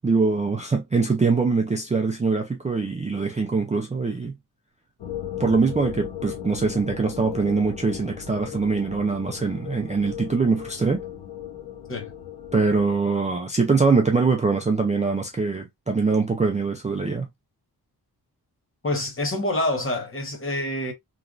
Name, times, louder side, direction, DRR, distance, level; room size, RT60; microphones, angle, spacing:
voice 1, 0.0-4.3 5.4-11.0 12.5-17.3, right 4 dB, 20° right, 0.4 m, -23 dB
sound 1, 5.0-13.0, left 10 dB, 80° left, 0.8 m, -37 dB
voice 2, 18.8-20.9, left 1 dB, 35° left, 1.0 m, -26 dB
3.0 x 2.4 x 2.3 m
wide cardioid pair, 175°, 39 cm